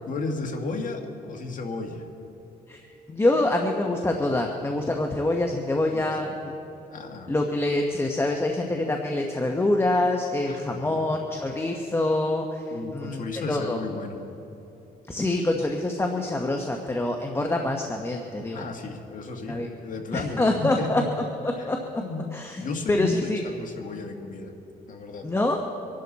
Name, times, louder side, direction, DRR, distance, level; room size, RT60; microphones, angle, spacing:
voice 1, 0.1-2.0 5.9-6.4 6.9-7.3 10.5-11.1 12.7-14.3 18.5-21.1 21.6-21.7 22.0-24.5 24.9-25.3, left 3 dB, 55° left, 3 dB, 2.0 m, -34 dB
voice 2, 3.1-6.5 7.3-13.8 15.1-18.7 19.5-19.7 20.1-21.0 21.4-22.0 22.3-22.6 22.9-23.4 25.2-25.6, left 2 dB, 15° left, 2 dB, 1.1 m, -25 dB
25.0 x 11.5 x 4.2 m, 2.9 s
cardioid pair, 95°, 16 cm